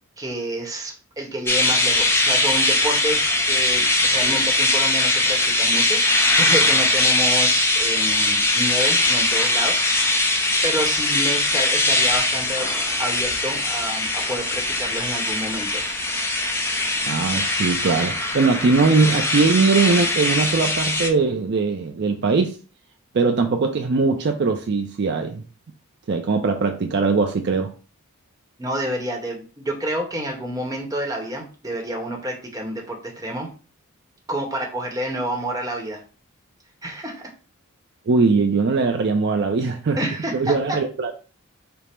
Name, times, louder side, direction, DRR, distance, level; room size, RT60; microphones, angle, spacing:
voice 1, 0.2-9.8 10.6-12.7 13.0-15.9 28.6-33.5 34.3-36.0 36.8-37.2 40.0-40.8, right 1 dB, 15° right, 0.9 m, -29 dB
sound 1, 1.5-21.1, left 2 dB, 10° left, 0.5 m, -21 dB
voice 2, 17.1-22.6 23.1-25.4 26.1-27.7 38.1-40.0 40.3-41.2, right 4 dB, 50° right, 0.4 m, -20 dB
5.1 x 2.0 x 4.3 m
head